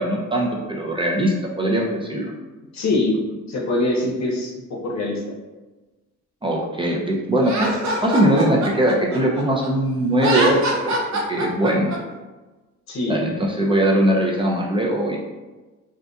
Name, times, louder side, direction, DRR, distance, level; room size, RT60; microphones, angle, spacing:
voice 1, 0.0-2.3 6.4-7.7 8.0-10.6 10.8-11.0 11.3-12.0 13.1-15.2, right 1 dB, 20° right, -2 dB, 0.3 m, -20 dB
voice 2, 2.7-3.2 3.5-5.2 12.9-13.2, left 2 dB, 65° left, -2 dB, 0.7 m, -23 dB
Laughter, 7.4-9.7 10.1-12.0, right 1 dB, 65° right, 0.7 m, -24 dB
2.6 x 2.4 x 2.2 m, 1.2 s
cardioid pair, 90°, 30 cm